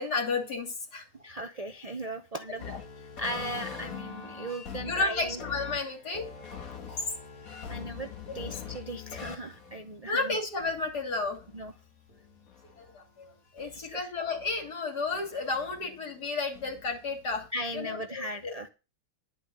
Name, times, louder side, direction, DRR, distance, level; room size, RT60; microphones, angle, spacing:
voice 1, 0.0-1.1 2.7-2.8 4.9-6.3 10.1-11.4 12.8-17.5 17.7-18.5, left 3 dB, 75° left, 2 dB, 3.4 m, -32 dB
voice 2, 1.2-2.7 3.0-5.4 6.9-7.1 7.7-8.1 8.3-10.4 11.5-11.7 13.9-14.1 17.5-18.7, right 1 dB, 45° right, 8 dB, 0.5 m, -37 dB
sound 1, 2.6-12.9 13.6-14.7 15.1-17.5, left 7 dB, 55° left, 2.1 m, -44 dB
11.0 x 5.4 x 7.8 m, 0.32 s
omnidirectional pair, 1.8 m